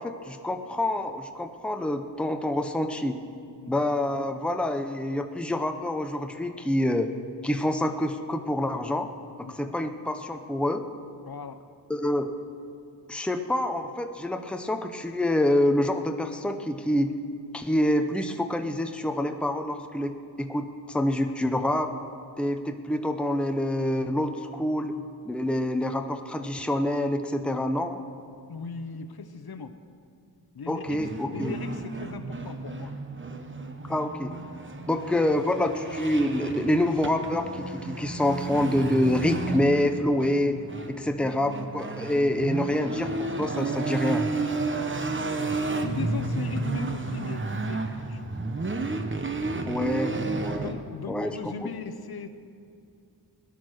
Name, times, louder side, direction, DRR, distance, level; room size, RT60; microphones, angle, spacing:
voice 1, 0.0-3.2 3.7-7.1 7.4-9.1 9.4-10.8 11.9-12.3 13.1-17.1 17.5-21.9 22.4-25.0 25.2-28.0 30.7-31.5 33.9-34.4 34.9-40.6 40.9-44.2 49.7-50.7 51.1-51.5, left 1 dB, 5° left, 6 dB, 0.7 m, -27 dB
voice 2, 9.4-9.7 11.2-11.6 28.5-29.7 30.5-33.0 34.9-35.0 41.1-41.2 45.8-48.3 50.5-52.3, left 5 dB, 60° left, 9 dB, 0.9 m, -38 dB
sound 1, 30.9-50.7, right 3 dB, 30° right, 1.0 m, -32 dB
18.5 x 10.5 x 6.4 m, 2.3 s
wide cardioid pair, 115°, 41 cm